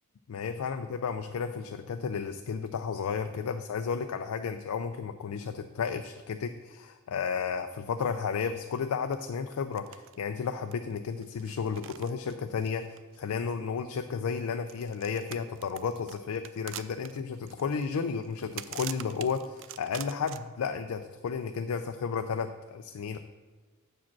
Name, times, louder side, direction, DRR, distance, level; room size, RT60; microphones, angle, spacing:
voice 1, 0.3-23.2, left 6 dB, 80° left, 7 dB, 0.4 m, -33 dB
sound 1, 9.1-9.2 9.5-10.2 10.4-13.7 14.6-20.4, right 12 dB, 60° right, 0.4 m, -45 dB
7.2 x 4.9 x 5.9 m, 1.4 s
head